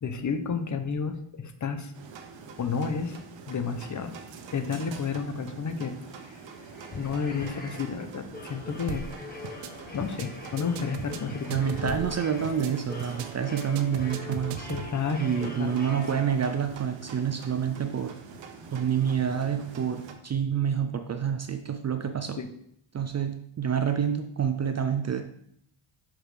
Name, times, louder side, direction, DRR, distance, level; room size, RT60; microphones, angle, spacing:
voice 1, 0.0-1.9 2.6-3.2 3.5-4.1 4.5-6.4 6.9-9.1 9.9-12.0 14.7-16.0 22.4-22.5 23.0-23.1, left 5 dB, 35° left, 8 dB, 0.7 m, -31 dB
sound 1, 1.9-20.1, right 5 dB, 65° right, 0.9 m, -45 dB
sound 2, 6.3-16.7, left 2 dB, 20° left, 1.4 m, -43 dB
sound 3, 8.9-9.2 9.4-9.7 10.0-10.3 10.6-12.2 12.4-12.7 13.0-13.3 13.6-14.9, right 8 dB, 90° right, 0.6 m, -37 dB
voice 2, 11.5-14.7 15.2-18.2 18.7-22.4 22.9-25.2, right 8 dB, 35° right, 8 dB, 0.4 m, -28 dB
5.8 x 5.0 x 3.3 m, 0.70 s
cardioid pair, 95°, 49 cm